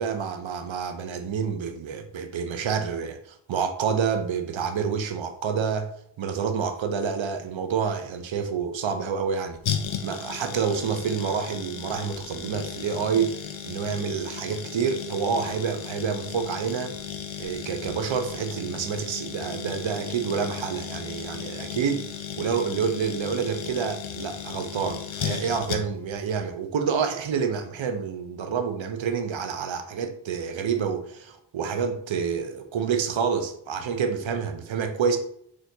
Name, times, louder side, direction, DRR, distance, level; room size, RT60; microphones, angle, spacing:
voice 1, 0.0-5.9 6.2-9.6 10.0-13.4 13.6-16.9 17.4-22.1 22.4-35.2, right 6 dB, 75° right, 0.7 m, -28 dB
sound 1, 9.6-26.2 26.4-26.5, left 8 dB, 80° left, 0.6 m, -35 dB
6.3 x 2.6 x 2.7 m
cardioid pair, 45°, 47 cm